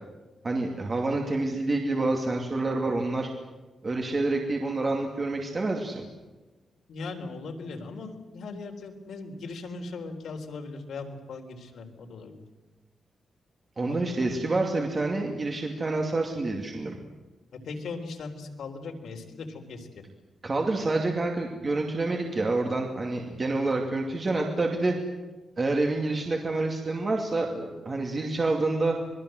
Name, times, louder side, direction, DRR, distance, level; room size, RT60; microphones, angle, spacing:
voice 1, 0.4-3.3 3.8-6.1 13.8-17.0 20.4-24.9 25.6-29.0, right 2 dB, 25° right, 1 dB, 2.5 m, -27 dB
voice 2, 6.9-12.4 13.9-14.3 17.5-20.0, left 3 dB, 80° left, 3 dB, 3.9 m, -39 dB
26.5 x 21.0 x 7.9 m, 1.2 s
wide cardioid pair, 175°, 0 cm